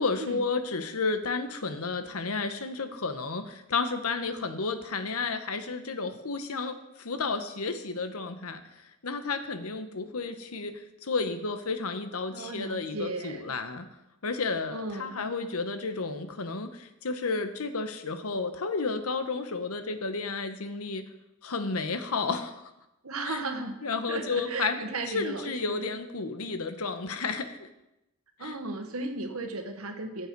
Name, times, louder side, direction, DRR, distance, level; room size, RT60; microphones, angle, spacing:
voice 1, 0.0-8.6 9.0-13.9 14.2-21.0 21.4-22.7 23.2-23.4 23.8-24.8 25.1-27.7 28.4-28.5, left 4 dB, 90° left, 9 dB, 1.1 m, -32 dB
voice 2, 12.3-13.5 14.7-15.2 23.0-23.7 24.1-25.9 28.4-30.3, right 2 dB, 80° right, 6 dB, 1.4 m, -35 dB
15.0 x 7.8 x 4.7 m, 0.92 s
head